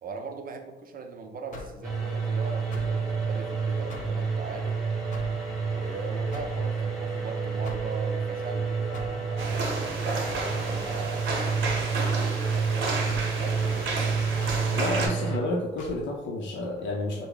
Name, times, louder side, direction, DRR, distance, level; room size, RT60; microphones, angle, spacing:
voice 1, 0.0-4.8 5.7-11.3 11.9-14.0, right 4 dB, 45° right, 5 dB, 0.5 m, -40 dB
sound 1, 1.5-1.8 2.7-3.0 3.9-4.2 5.1-5.4 6.3-6.6 7.6-7.9 8.9-9.2 10.3-10.5 11.6-11.9 13.1-13.3 14.4-14.7 15.8-16.0, left 3 dB, 40° left, 0.8 m, -41 dB
sound 2, 1.8-15.4, right 5 dB, ahead, 0.9 m, -29 dB
sound 3, 9.4-15.1, right 2 dB, 70° right, 0.9 m, -32 dB
voice 2, 14.7-17.3, left 2 dB, 70° left, -1 dB, 0.6 m, -30 dB
3.4 x 2.0 x 3.7 m, 1.1 s
cardioid pair, 90°, 20 cm